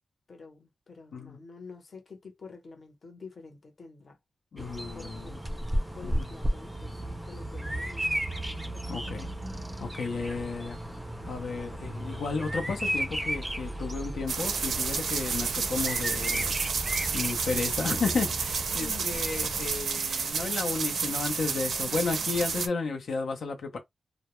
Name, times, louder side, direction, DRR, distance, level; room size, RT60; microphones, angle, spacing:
voice 1, 0.3-4.2 4.5-5.5 5.9-8.5 18.8-19.1, left 4 dB, 45° left, 0.8 m, -48 dB
voice 2, 4.5-5.4 6.0-6.3 8.9-9.3 9.8-10.8 11.3-16.6 17.1-23.8, left 4 dB, 85° left, 0.6 m, -33 dB
Bird vocalization bird call bird song, 4.6-19.7, right 1 dB, 10° right, 0.4 m, -34 dB
sound 1, 14.3-22.7, right 5 dB, 90° right, 0.4 m, -30 dB
2.2 x 2.0 x 2.9 m
wide cardioid pair, 145°, 0 cm